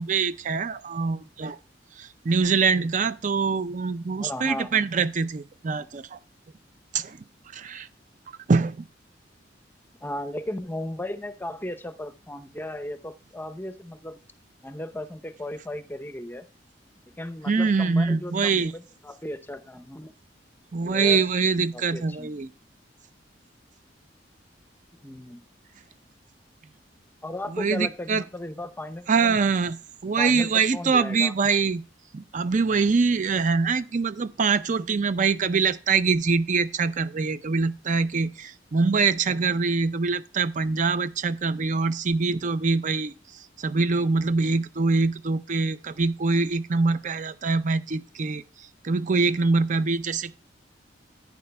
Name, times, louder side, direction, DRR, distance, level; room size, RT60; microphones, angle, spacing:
voice 1, 0.0-1.6 2.0-6.2 6.9-7.2 7.5-7.9 8.3-8.9 17.5-18.7 20.7-22.5 27.5-28.2 29.1-31.8 32.1-50.3, right 4 dB, 45° right, 0.5 m, -24 dB
voice 2, 4.2-4.9 10.0-14.2 14.6-16.4 17.2-20.1 20.8-21.2 21.7-22.3 25.0-25.4 27.2-29.4 30.2-31.3, left 1 dB, 10° left, 0.7 m, -35 dB
11.0 x 9.4 x 2.2 m
head